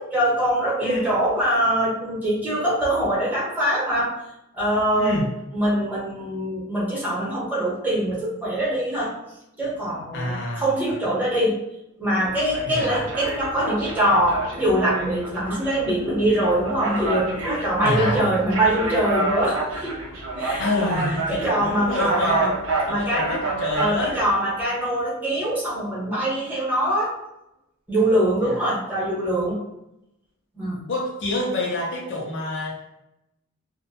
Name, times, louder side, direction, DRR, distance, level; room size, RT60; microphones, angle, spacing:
voice 1, 0.0-4.2 4.5-5.2 5.5-9.1 9.6-11.6 12.0-20.0 20.4-21.0 21.3-22.5 22.9-23.3 23.8-27.2 27.9-29.6 30.5-30.8, right 1 dB, 10° right, -8 dB, 0.9 m, -23 dB
voice 2, 5.0-5.3 10.1-10.7 12.7-13.1 17.8-18.2 20.6-22.5 22.9-24.2 28.4-28.7 30.9-33.0, left 2 dB, 55° left, -3 dB, 0.5 m, -27 dB
sound 1, 12.3-24.3, right 3 dB, 65° right, 0.6 m, -29 dB
2.6 x 2.1 x 2.6 m, 0.87 s
head